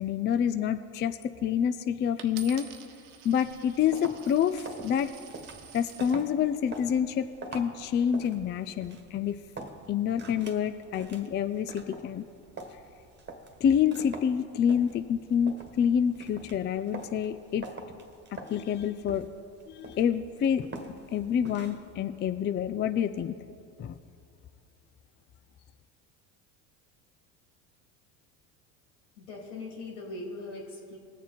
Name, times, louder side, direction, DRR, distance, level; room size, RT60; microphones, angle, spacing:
voice 1, 0.0-2.7 3.2-5.1 5.7-9.4 9.9-12.3 13.6-17.7 18.5-19.3 19.7-20.7 21.1-23.4 23.8-24.0, left 8 dB, 25° left, 10 dB, 0.4 m, -27 dB
Coin (dropping), 2.2-6.2 6.9-7.3, right 8 dB, 85° right, 1.1 m, -49 dB
sound 1, 3.4-21.9, right 2 dB, 25° right, 1.5 m, -45 dB
voice 2, 29.2-31.0, left 2 dB, 80° left, -1 dB, 3.2 m, -40 dB
20.0 x 7.1 x 4.3 m, 2.4 s
supercardioid pair, 90°, 43 cm